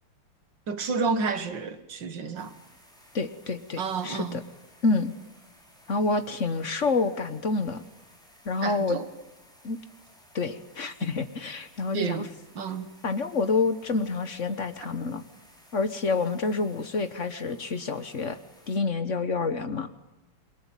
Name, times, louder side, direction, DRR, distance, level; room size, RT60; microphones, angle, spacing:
voice 1, 0.7-2.5 3.8-4.4 8.6-9.1 11.9-12.3 12.6-12.9, right 5 dB, 55° right, 2.2 m, -30 dB
sound 1, 2.4-18.8, equal, ahead, 6.2 m, -57 dB
voice 2, 3.1-4.4 4.8-5.1 5.9-7.8 8.4-9.0 9.6-9.8 10.3-12.3 13.0-15.2 15.7-18.4 18.7-19.9, left 3 dB, 40° left, 1.3 m, -28 dB
28.5 x 22.0 x 9.0 m
omnidirectional pair, 2.4 m